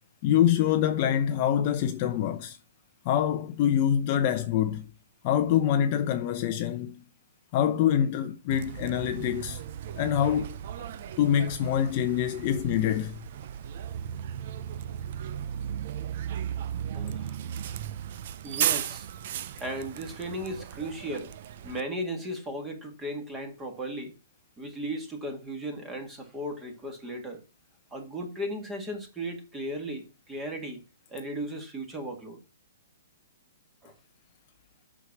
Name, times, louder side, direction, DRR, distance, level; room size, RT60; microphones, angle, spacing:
voice 1, 0.2-2.6 3.0-4.9 5.2-7.0 7.5-9.6 10.0-10.5 11.2-13.2, left 10 dB, 30° left, 0.7 m, -25 dB
Bus, 8.5-21.8, right 10 dB, 40° right, 0.6 m, -35 dB
voice 2, 16.9-17.4 18.4-19.1 19.6-21.3 21.6-24.1 24.6-27.4 27.9-30.8 31.1-32.4 33.8-33.9, right 1 dB, 10° right, 1.8 m, -36 dB
8.1 x 6.1 x 7.3 m
hypercardioid pair, 170°, 0 cm